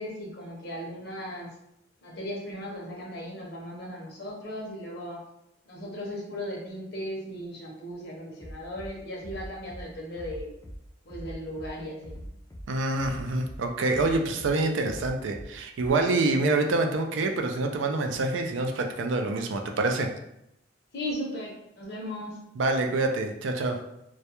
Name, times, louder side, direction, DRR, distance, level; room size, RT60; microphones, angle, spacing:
voice 1, 0.0-1.5 2.0-5.2 5.7-10.5 11.0-12.3 20.9-22.4, equal, 55° left, -2 dB, 0.7 m, -37 dB
Bass drum, 8.4-8.9 9.2-9.8 10.2-10.8 11.1-11.7 12.0-12.6 13.0-13.6 13.9-14.5 14.8-15.5 15.8-15.9, equal, 20° left, 0.3 m, -41 dB
voice 2, 12.7-20.1 22.6-23.8, right 2 dB, 80° right, 4 dB, 0.4 m, -26 dB
2.3 x 2.1 x 2.8 m, 0.80 s
head